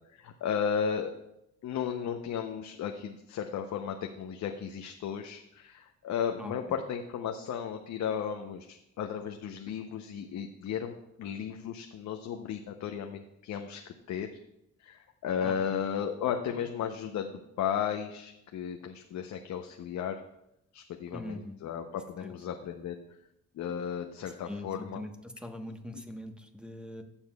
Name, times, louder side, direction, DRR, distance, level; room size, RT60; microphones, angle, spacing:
voice 1, 0.1-1.2 1.6-14.3 14.8-20.2 20.7-23.0 23.6-25.0, left 8 dB, 70° left, 5 dB, 0.7 m, -34 dB
voice 2, 15.4-15.8 21.1-21.5 22.2-22.3 24.5-27.0, left 1 dB, 5° right, 5 dB, 1.1 m, -42 dB
15.0 x 7.2 x 2.3 m, 0.83 s
cardioid pair, 90°, 30 cm